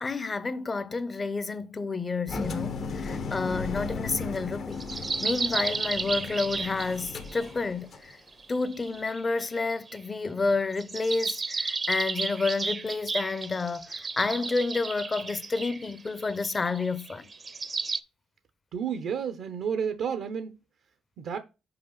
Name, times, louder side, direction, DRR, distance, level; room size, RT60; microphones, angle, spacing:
voice 1, 0.0-4.9 5.2-8.2 8.5-17.3, left 3 dB, 30° left, 0.7 m, -30 dB
Engine, 2.3-8.1, left 4 dB, 65° left, 1.2 m, -36 dB
sound 1, 4.8-7.5 8.3-10.0 10.7-18.0, right 4 dB, 35° right, 0.6 m, -33 dB
voice 2, 18.7-20.5 21.2-21.4, right 7 dB, 75° right, 0.7 m, -31 dB
5.8 x 4.9 x 3.9 m
cardioid pair, 90°, 0 cm